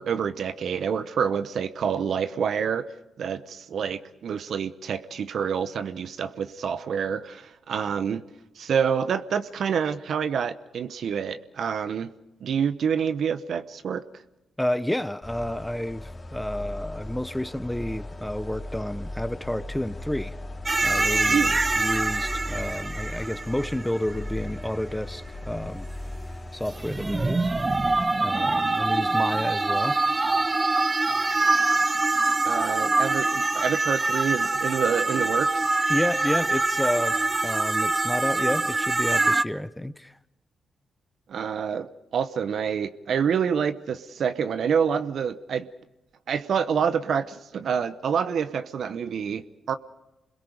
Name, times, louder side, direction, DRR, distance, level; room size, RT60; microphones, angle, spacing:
voice 1, 0.0-2.9 3.2-8.2 8.6-12.1 12.4-14.0 21.3-21.6 32.4-35.8 41.3-45.7 46.3-49.7, right 7 dB, 70° right, 0.9 m, -27 dB
voice 2, 14.6-20.3 20.8-25.9 26.5-27.5 28.2-30.0 35.9-37.2 37.4-40.1, left 1 dB, 10° left, 1.0 m, -30 dB
sound 1, 15.2-28.1, left 1 dB, 35° left, 2.5 m, -37 dB
sound 2, 20.7-24.3 26.7-39.4, right 2 dB, 30° right, 0.6 m, -24 dB
28.5 x 21.5 x 5.2 m
supercardioid pair, 45°, 0 cm